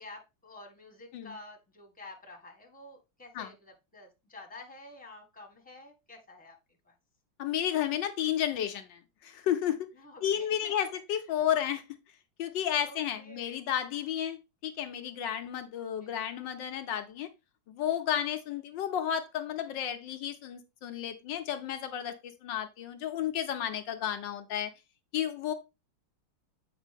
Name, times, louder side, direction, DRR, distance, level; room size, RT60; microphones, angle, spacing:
voice 1, 0.0-6.5 6.8-6.9 9.9-11.2 12.7-13.6 15.7-16.1, left 2 dB, 5° left, 1.3 m, -50 dB
voice 2, 7.4-9.9 10.2-11.8 12.4-17.3 17.7-24.7 25.1-25.5, left 10 dB, 70° left, 1.2 m, -32 dB
8.1 x 5.2 x 3.4 m
omnidirectional pair, 2.4 m